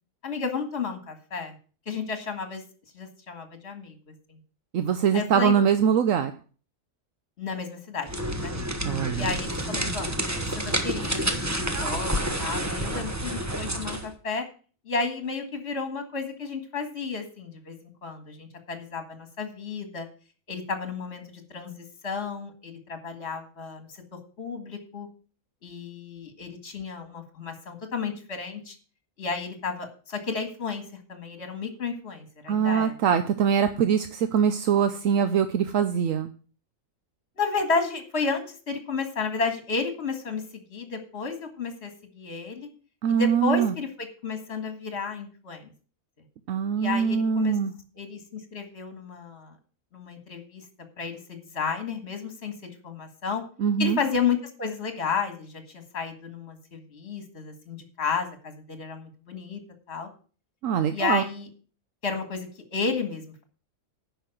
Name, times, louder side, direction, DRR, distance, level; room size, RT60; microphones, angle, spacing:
voice 1, 0.2-1.5 1.9-2.6 2.9-4.0 4.3-4.4 5.1-5.5 7.4-8.6 9.1-11.5 11.8-14.4 14.9-20.1 20.5-23.9 24.4-25.1 25.6-28.8 29.2-30.8 31.1-32.9 37.4-42.7 43.1-45.7 46.8-47.6 48.0-49.6 49.9-50.6 51.0-53.4 53.8-59.6 59.9-60.1 60.9-61.5 62.0-63.4, left 5 dB, 50° left, 6 dB, 2.1 m, -32 dB
voice 2, 4.7-6.3 8.9-9.4 32.5-36.3 43.0-43.7 46.5-47.7 53.6-54.0 60.6-61.2, right 7 dB, 75° right, 10 dB, 1.1 m, -23 dB
sound 1, 8.0-14.1, right 1 dB, 15° right, 1.1 m, -29 dB
9.8 x 5.7 x 7.7 m, 0.39 s
omnidirectional pair, 1.4 m